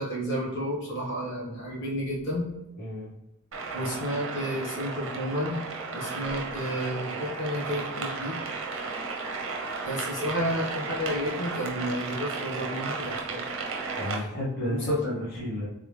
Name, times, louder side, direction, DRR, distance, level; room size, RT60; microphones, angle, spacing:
voice 1, 0.0-2.4 3.7-5.6 5.9-8.4 9.8-13.5 14.1-14.2 14.6-15.0, equal, 55° left, -5 dB, 1.5 m, -31 dB
voice 2, 2.8-3.1 13.9-15.7, left 1 dB, 40° left, -9 dB, 1.2 m, -32 dB
sound 1, 3.5-14.2, right 4 dB, 55° right, 0.8 m, -34 dB
3.7 x 3.3 x 3.4 m, 0.94 s
head